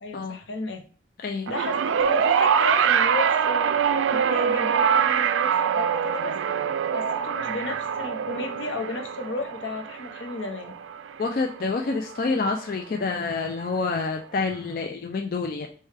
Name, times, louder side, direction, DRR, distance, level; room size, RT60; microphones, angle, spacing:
voice 1, 0.0-0.8 1.5-3.7 4.1-6.4 6.9-10.8, left 3 dB, 80° left, 6 dB, 0.7 m, -34 dB
sound 1, 1.5-11.9 12.9-13.0, right 7 dB, 85° right, 0.3 m, -24 dB
voice 2, 11.2-15.7, left 4 dB, 45° left, 3 dB, 0.3 m, -27 dB
6.3 x 2.2 x 3.3 m, 0.41 s
head